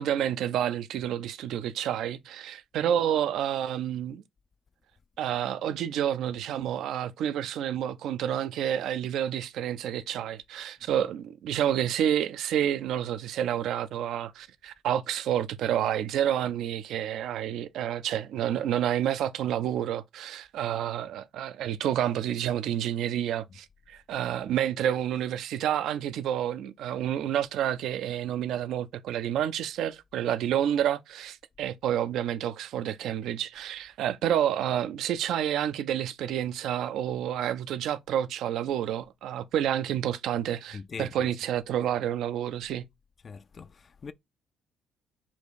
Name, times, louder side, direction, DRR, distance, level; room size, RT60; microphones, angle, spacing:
voice 1, 0.0-4.2 5.2-42.9, right 10 dB, 70° right, 0.4 m, -29 dB
voice 2, 40.7-41.3 43.2-44.1, left 5 dB, 45° left, 0.3 m, -42 dB
4.2 x 2.4 x 4.5 m
hypercardioid pair, 55°, 0 cm